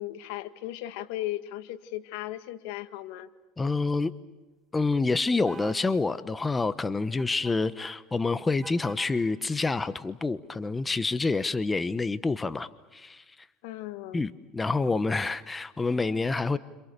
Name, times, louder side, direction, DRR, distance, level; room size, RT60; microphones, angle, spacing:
voice 1, 0.0-3.3 13.6-14.3, left 15 dB, 75° left, 1.9 m, -36 dB
voice 2, 3.6-4.1 4.7-13.2 14.1-16.6, left 3 dB, 15° left, 1.1 m, -27 dB
sound 1, 5.5-5.8 7.2-7.6 8.6-9.2, right 4 dB, 20° right, 4.8 m, -45 dB
30.0 x 28.0 x 6.9 m
supercardioid pair, 120°, 0 cm